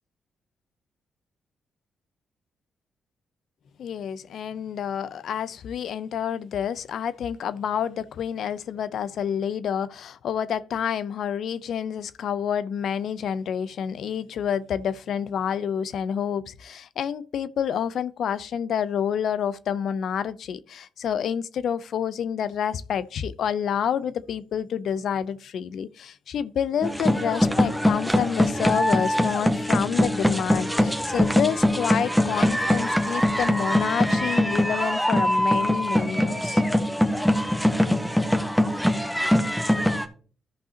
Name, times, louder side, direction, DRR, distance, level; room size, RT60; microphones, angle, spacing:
voice 1, 3.8-36.6, left 8 dB, 70° left, 0.6 m, -28 dB
sound 1, 26.8-40.0, equal, 5° left, 1.4 m, -22 dB
14.0 x 5.5 x 2.9 m
hypercardioid pair, 50°, 0 cm